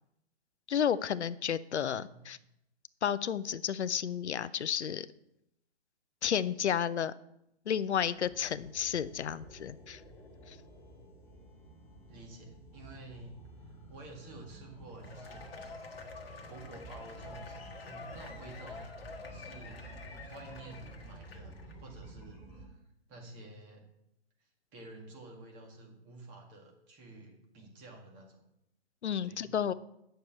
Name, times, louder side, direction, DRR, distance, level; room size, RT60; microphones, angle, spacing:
voice 1, 0.7-2.4 3.0-5.1 6.2-7.1 7.7-10.0 10.5-10.6 29.0-29.7, left 8 dB, 85° left, 16 dB, 0.5 m, -32 dB
voice 2, 1.8-2.2 12.1-13.3 13.6-18.9 19.3-19.8 20.2-22.7 23.1-23.9 24.7-28.4 29.2-29.5, right 2 dB, 25° right, 1 dB, 1.9 m, -51 dB
sound 1, 8.1-22.7, right 1 dB, 5° left, 2.2 m, -51 dB
Cheering / Applause / Crowd, 14.9-21.7, left 4 dB, 60° left, 1.3 m, -48 dB
9.2 x 6.6 x 4.5 m, 0.82 s
hypercardioid pair, 140°, 33 cm